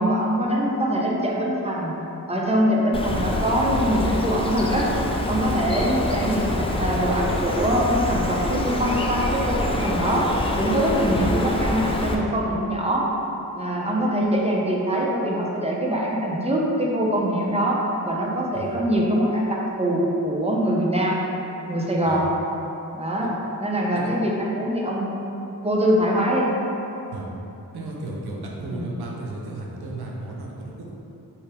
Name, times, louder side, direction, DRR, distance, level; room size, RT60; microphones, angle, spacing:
voice 1, 0.0-2.0 2.3-4.9 5.3-13.1 13.5-21.2 21.7-22.3 22.9-23.3 23.6-25.1 25.6-26.5 28.7-28.9, equal, 15° right, -3 dB, 0.7 m, -23 dB
Bird, 2.9-12.2, left 1 dB, 15° left, 0.4 m, -26 dB
voice 2, 27.7-30.9, right 2 dB, 90° right, -2 dB, 0.7 m, -34 dB
4.6 x 2.8 x 3.3 m, 3.0 s
cardioid pair, 60°, 38 cm